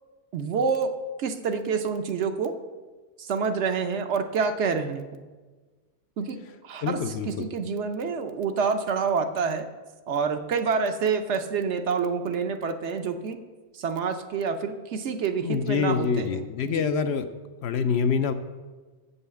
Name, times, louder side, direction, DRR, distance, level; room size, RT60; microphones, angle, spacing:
voice 1, 0.3-0.9 1.2-2.5 3.2-5.0 6.2-6.4 6.6-7.0 7.3-9.7 10.1-13.4 13.7-16.8, right 5 dB, 70° right, 7 dB, 1.0 m, -27 dB
voice 2, 6.8-7.5 15.4-17.3 17.6-18.3, left 6 dB, 70° left, 9 dB, 0.8 m, -26 dB
7.6 x 5.5 x 7.0 m, 1.3 s
omnidirectional pair, 1.2 m